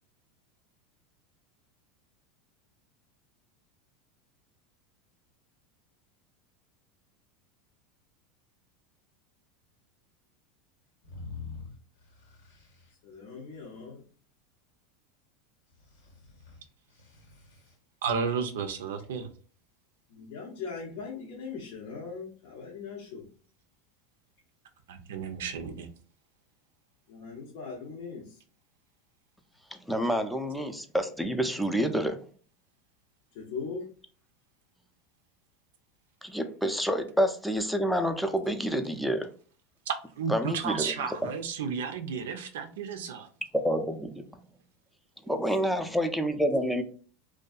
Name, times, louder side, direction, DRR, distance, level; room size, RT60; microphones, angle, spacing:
sound 1, 11.0-12.9 15.7-17.7, left 5 dB, 90° left, 1.2 m, -46 dB
voice 1, 13.0-14.0 20.1-23.2 27.1-28.2 33.4-33.8, left 5 dB, 65° left, -2 dB, 0.6 m, -40 dB
voice 2, 18.0-19.3 24.9-25.9 39.9-43.3, right 6 dB, 85° right, 7 dB, 0.4 m, -33 dB
voice 3, 29.9-32.2 36.2-39.3 40.3-41.3 43.5-44.1 45.3-46.8, equal, ahead, 6 dB, 0.4 m, -28 dB
2.6 x 2.2 x 2.3 m, 0.41 s
supercardioid pair, 110°, 0 cm